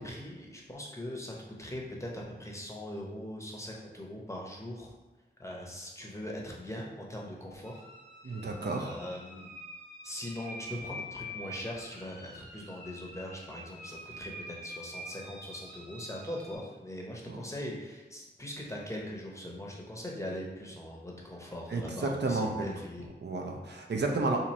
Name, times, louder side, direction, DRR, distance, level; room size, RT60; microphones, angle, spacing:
voice 1, 0.0-4.9 5.4-7.8 8.2-9.5 10.0-23.1, left 1 dB, 15° left, -2 dB, 0.6 m, -41 dB
sound 1, 7.6-16.6, equal, 50° right, 1.5 m, -46 dB
voice 2, 8.2-9.0 17.3-17.4 21.7-22.6 23.2-24.4, right 3 dB, 65° right, 1 dB, 0.5 m, -31 dB
2.9 x 2.6 x 4.0 m, 1.1 s
wide cardioid pair, 80°, 19 cm